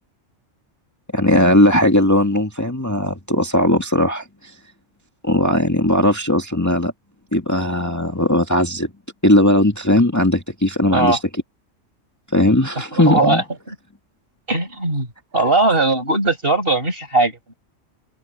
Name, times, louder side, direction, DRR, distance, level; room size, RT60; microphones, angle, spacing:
voice 1, 1.1-4.5 5.2-6.9 7.3-8.9 9.2-11.2 12.3-13.4, left 1 dB, 15° left, 2.0 m, -17 dB
voice 2, 12.8-13.7 14.5-15.1 15.3-17.5, right 2 dB, 45° right, 5.6 m, -19 dB
open air
omnidirectional pair, 1.4 m